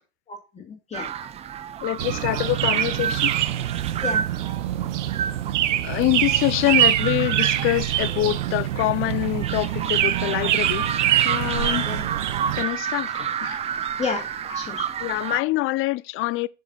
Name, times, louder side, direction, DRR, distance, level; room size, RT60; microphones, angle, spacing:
voice 1, 0.3-1.1 4.0-4.2 11.8-12.0 13.1-13.3 14.0-14.2 14.5-14.9, left 5 dB, 20° left, 2.4 m, -31 dB
sound 1, 0.9-15.4, right 8 dB, 20° right, 0.4 m, -31 dB
voice 2, 1.8-3.3 5.8-10.9 11.2-11.9 12.5-13.1 13.4-13.6 15.0-16.5, left 18 dB, 35° left, 0.5 m, -25 dB
sound 2, 2.0-12.6, right 12 dB, 85° right, 0.8 m, -24 dB
7.0 x 6.7 x 5.4 m
hypercardioid pair, 110°, 35 cm